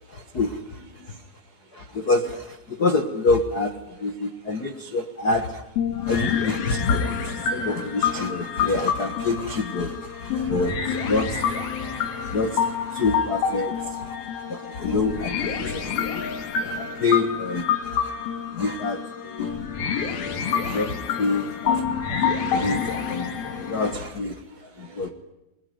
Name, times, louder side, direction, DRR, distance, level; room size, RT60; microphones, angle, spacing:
voice 1, 0.1-0.6 1.7-5.6 6.1-14.1 14.5-16.2 16.6-18.1 18.5-19.5 20.6-21.8 22.1-22.2 22.5-24.3 24.8-25.1, left 3 dB, 50° left, 6 dB, 1.2 m, -27 dB
voice 2, 0.7-1.2 6.0-6.1 7.1-7.2 11.8-12.4 14.5-14.8 18.4-18.6 22.5-22.7 24.4-25.1, right 1 dB, 70° right, 6 dB, 5.9 m, -49 dB
sound 1, 5.8-23.9, left 7 dB, 85° left, 4.4 m, -27 dB
26.5 x 22.5 x 9.4 m, 0.95 s
omnidirectional pair, 4.1 m